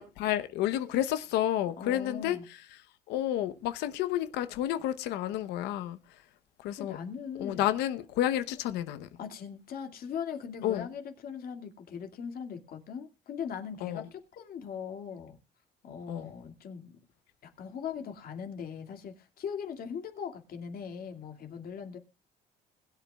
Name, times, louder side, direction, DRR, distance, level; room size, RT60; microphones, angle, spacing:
voice 1, 0.0-2.4 3.1-6.0 6.6-7.0 7.4-9.1 10.6-10.9 13.8-14.1 16.1-16.3, left 12 dB, 90° left, 0.9 m, -30 dB
voice 2, 1.8-2.4 6.8-7.6 9.2-15.4 15.8-16.9 17.4-22.0, left 7 dB, 60° left, 2.3 m, -40 dB
21.0 x 8.3 x 2.3 m
cardioid pair, 110°, 17 cm